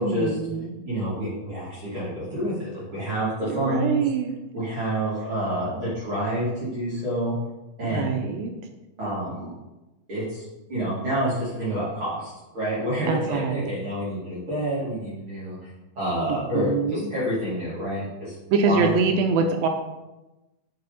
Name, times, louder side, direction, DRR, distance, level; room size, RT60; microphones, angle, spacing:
voice 1, 0.0-0.7 3.6-4.4 7.9-8.5 13.1-13.7 16.5-17.1 18.5-19.7, right 4 dB, 80° right, 5 dB, 2.3 m, -24 dB
voice 2, 0.8-4.0 4.5-7.3 7.8-8.2 9.0-9.5 10.1-10.4 10.7-15.6 15.9-18.3 18.6-18.9, right 1 dB, 35° right, -11 dB, 2.9 m, -28 dB
9.7 x 5.5 x 4.1 m, 1.0 s
omnidirectional pair, 4.4 m